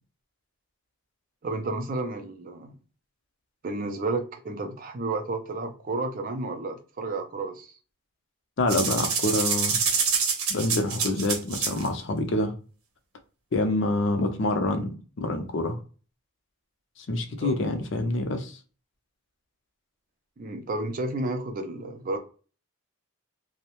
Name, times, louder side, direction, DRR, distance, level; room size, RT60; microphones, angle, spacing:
voice 1, 1.4-2.8 3.6-7.7 17.4-17.6 20.4-22.2, right 2 dB, 40° right, 0.4 m, -31 dB
voice 2, 8.6-9.8 10.5-12.5 13.5-15.8 17.0-18.6, left 2 dB, 55° left, 0.5 m, -26 dB
sound 1, 8.7-11.9, right 5 dB, 90° right, 0.8 m, -26 dB
2.6 x 2.0 x 2.8 m
head